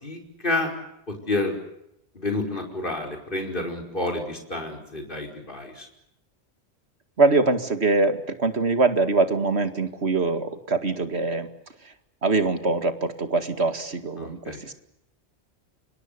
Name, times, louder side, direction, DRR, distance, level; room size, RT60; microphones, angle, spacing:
voice 1, 0.0-0.7 1.1-1.6 2.2-5.9 14.2-14.6, left 2 dB, 50° left, 2 dB, 5.4 m, -29 dB
voice 2, 7.2-11.5 12.2-14.7, right 3 dB, 75° right, 9 dB, 2.4 m, -23 dB
30.0 x 26.5 x 6.8 m, 0.81 s
omnidirectional pair, 1.1 m